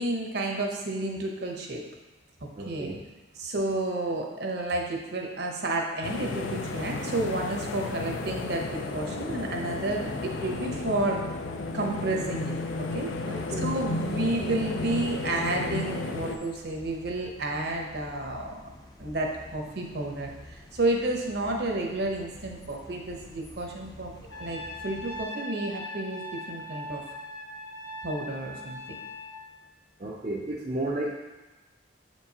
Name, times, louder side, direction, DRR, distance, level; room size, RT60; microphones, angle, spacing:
voice 1, 0.0-1.8 2.4-2.9 3.4-8.7 8.9-11.2 11.7-13.1 13.6-18.6 19.0-24.1 24.4-27.0 28.0-29.0, right 2 dB, 50° right, 1 dB, 0.8 m, -31 dB
voice 2, 2.6-3.0 13.3-13.8 30.0-31.1, right 1 dB, 35° right, -4 dB, 0.5 m, -33 dB
sound 1, 6.0-16.4, left 3 dB, 70° left, 0.5 m, -33 dB
sound 2, 9.9-25.2, left 1 dB, 20° left, 0.5 m, -49 dB
Trumpet, 24.3-29.4, left 1 dB, 90° left, 1.2 m, -40 dB
7.2 x 4.6 x 2.8 m, 1.1 s
head